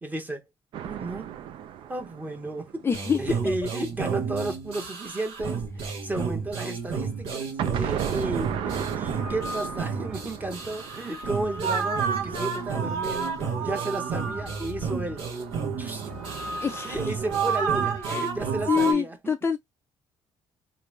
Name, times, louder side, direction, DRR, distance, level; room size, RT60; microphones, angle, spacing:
voice 1, 0.0-0.4 0.8-1.3 1.9-13.3 13.6-15.3 15.8-16.0 16.8-19.3, right 2 dB, 20° right, 1.0 m, -33 dB
sound 1, 0.7-3.5 7.6-13.8 15.1-17.5, right 9 dB, 65° right, 0.5 m, -36 dB
voice 2, 2.8-3.2 3.4-3.5 16.6-17.1 18.0-18.3 18.7-19.6, left 6 dB, 25° left, 0.4 m, -26 dB
sound 2, 2.9-18.9, right 6 dB, 85° right, 1.2 m, -31 dB
sound 3, 7.1-7.2 8.1-12.4 13.1-17.8, left 3 dB, 10° left, 0.8 m, -42 dB
3.1 x 2.5 x 3.2 m
cardioid pair, 100°, 10 cm